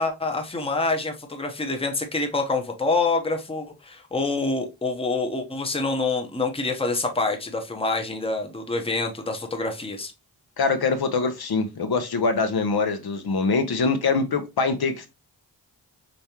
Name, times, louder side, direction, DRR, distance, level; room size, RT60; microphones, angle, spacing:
voice 1, 0.0-10.1, left 3 dB, 15° left, 4 dB, 0.8 m, -26 dB
voice 2, 10.6-15.1, left 4 dB, 65° left, 7 dB, 0.8 m, -24 dB
5.1 x 3.5 x 2.9 m, 0.25 s
wide cardioid pair, 160°, 41 cm